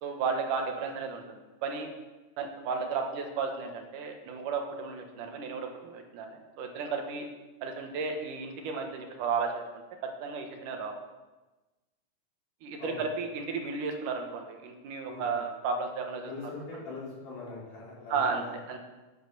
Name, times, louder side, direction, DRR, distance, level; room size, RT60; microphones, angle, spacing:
voice 1, 0.0-1.9 2.4-7.3 7.6-9.8 10.2-10.9 12.6-16.3 18.1-18.8, right 5 dB, 75° right, 4 dB, 2.7 m, -33 dB
voice 2, 15.1-15.4 16.2-18.5, left 3 dB, 75° left, -4 dB, 4.7 m, -42 dB
10.5 x 7.5 x 6.6 m, 1.1 s
omnidirectional pair, 3.7 m